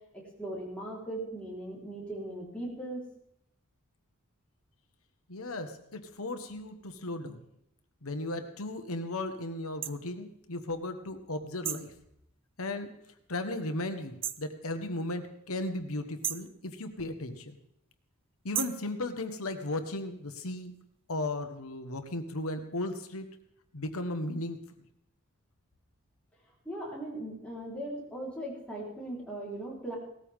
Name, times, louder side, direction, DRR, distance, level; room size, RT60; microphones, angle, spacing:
voice 1, 0.1-3.0 26.7-30.0, right 1 dB, 5° left, -5 dB, 4.2 m, -39 dB
voice 2, 5.3-7.4 8.0-11.9 12.6-13.0 13.3-17.6 18.4-20.7 21.1-23.3 23.7-24.6, left 2 dB, 80° left, 8 dB, 1.4 m, -36 dB
sound 1, 9.8-10.0 11.6-11.9 14.2-14.5 16.2-16.5 18.5-18.9, right 10 dB, 25° right, 0.4 m, -34 dB
18.0 x 14.0 x 3.7 m, 0.75 s
head